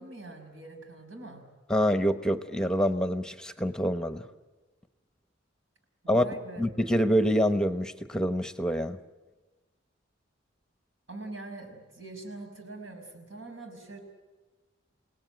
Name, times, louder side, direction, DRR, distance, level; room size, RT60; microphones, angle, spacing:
voice 1, 0.0-1.4 6.0-6.6 11.1-14.0, right 2 dB, 80° right, 4 dB, 5.8 m, -43 dB
voice 2, 1.7-4.3 6.1-6.2 6.6-9.0, equal, 5° left, 10 dB, 0.9 m, -26 dB
29.5 x 18.0 x 9.2 m, 1.2 s
head